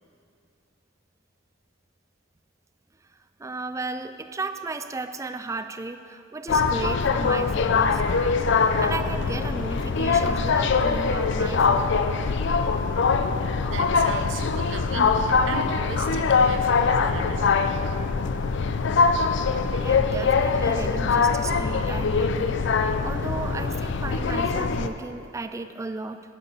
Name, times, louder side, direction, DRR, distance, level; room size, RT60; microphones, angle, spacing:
voice 1, 3.4-12.0 19.8-22.6 23.0-26.2, right 3 dB, 15° right, 10 dB, 0.3 m, -34 dB
sound 1, 6.5-24.9, left 4 dB, 60° left, 0.5 m, -23 dB
voice 2, 13.7-17.6, right 4 dB, 70° right, 6 dB, 0.8 m, -36 dB
11.5 x 6.8 x 5.4 m, 2.3 s
head